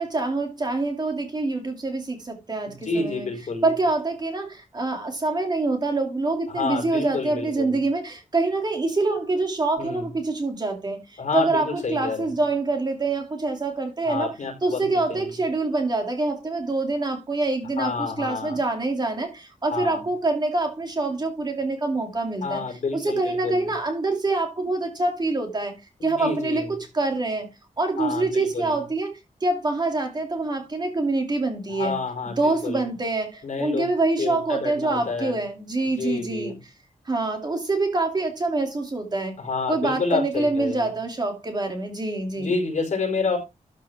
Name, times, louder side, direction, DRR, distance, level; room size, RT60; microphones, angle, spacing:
voice 1, 0.0-3.3 3.6-14.3 14.6-22.6 22.9-25.8 26.0-27.5 27.8-29.1 29.4-32.0 32.4-36.5 37.1-39.4 39.7-42.5, right 2 dB, 30° right, 2.6 m, -25 dB
voice 2, 2.7-3.7 6.5-7.8 9.8-10.1 11.2-12.3 14.0-15.3 17.8-18.6 19.7-20.0 22.4-23.7 26.1-26.7 28.0-28.8 31.7-32.9 33.4-33.9 34.2-35.4 35.8-36.6 39.4-40.9 42.3-43.4, left 4 dB, 65° left, 4.8 m, -29 dB
13.0 x 6.2 x 3.5 m
wide cardioid pair, 180°, 13 cm